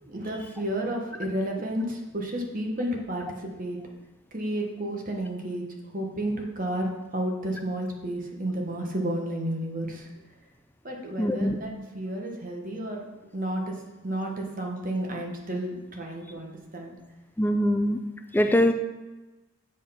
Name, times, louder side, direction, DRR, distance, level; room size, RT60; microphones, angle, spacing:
voice 1, 0.0-3.8 4.3-5.6 5.9-10.1 10.8-13.0 13.3-13.7 14.0-16.9, right 1 dB, 40° right, 1 dB, 1.2 m, -31 dB
voice 2, 11.2-11.6 17.4-18.0 18.3-18.7, equal, 10° left, 6 dB, 0.4 m, -22 dB
7.6 x 4.6 x 5.6 m, 1.1 s
head